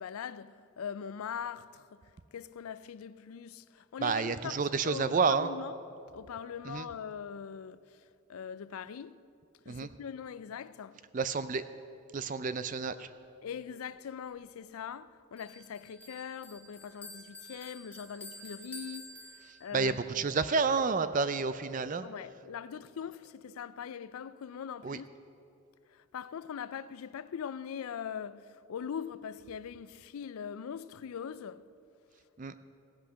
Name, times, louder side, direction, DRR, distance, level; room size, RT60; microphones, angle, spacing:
voice 1, 0.0-1.8 2.3-3.6 3.9-4.5 4.8-5.7 6.1-7.8 8.3-9.2 9.7-10.9 13.4-19.1 19.6-19.9 22.0-25.1 26.1-28.4 28.7-31.6, left 7 dB, 80° left, 0.4 m, -41 dB
voice 2, 4.0-5.5 6.6-6.9 9.7-9.9 11.1-11.6 12.1-13.1 19.4-22.1 24.8-25.0 32.4-32.5, right 5 dB, 35° right, 0.4 m, -30 dB
Bell, 15.4-19.9, left 1 dB, 5° left, 1.5 m, -49 dB
16.5 x 8.5 x 6.3 m
head